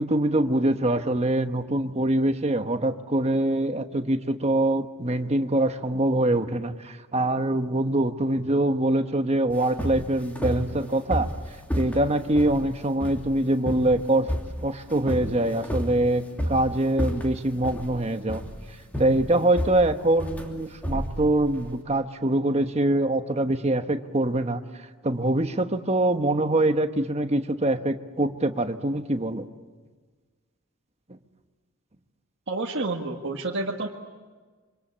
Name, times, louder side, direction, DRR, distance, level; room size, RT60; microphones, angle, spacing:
voice 1, 0.0-11.3 11.7-14.3 14.6-18.4 19.0-24.6 25.0-29.5 31.1-31.2, right 1 dB, 30° right, 8 dB, 1.2 m, -24 dB
sound 1, 9.5-21.7, equal, 5° left, 2.9 m, -32 dB
voice 2, 32.5-33.9, right 2 dB, 55° right, -1 dB, 1.7 m, -29 dB
27.0 x 25.5 x 8.7 m, 1.4 s
head